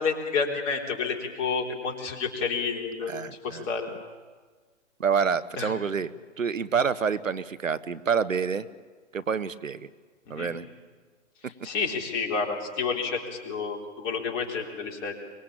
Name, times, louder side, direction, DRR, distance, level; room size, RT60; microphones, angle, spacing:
voice 1, 0.0-3.1 3.4-3.9 5.6-5.7 10.3-10.5 11.6-15.2, left 5 dB, 30° left, 0 dB, 3.9 m, -30 dB
voice 2, 3.1-3.7 5.0-6.1 6.4-8.7 9.1-9.9 10.3-10.7, right 6 dB, 85° right, 16 dB, 1.0 m, -27 dB
24.0 x 22.0 x 8.6 m, 1.4 s
figure-of-eight pair, 125°, 38 cm